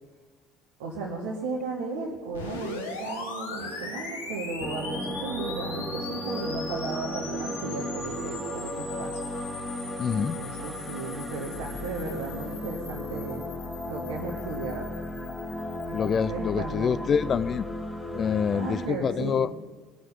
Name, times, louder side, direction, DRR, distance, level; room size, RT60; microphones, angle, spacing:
voice 1, 0.8-9.2 10.2-13.4 13.8-14.9 15.8-17.0 18.5-19.5, right 3 dB, 65° right, 1.6 m, -35 dB
sound 1, 2.3-16.2, left 4 dB, 80° left, 1.4 m, -40 dB
sound 2, 3.6-9.1, right 11 dB, 50° right, 0.6 m, -43 dB
sound 3, 4.6-18.9, left 1 dB, 10° left, 1.3 m, -35 dB
voice 2, 10.0-10.4 15.9-17.7 18.1-19.5, left 7 dB, 35° left, 0.4 m, -26 dB
21.5 x 7.8 x 5.7 m
figure-of-eight pair, 60°, 0 cm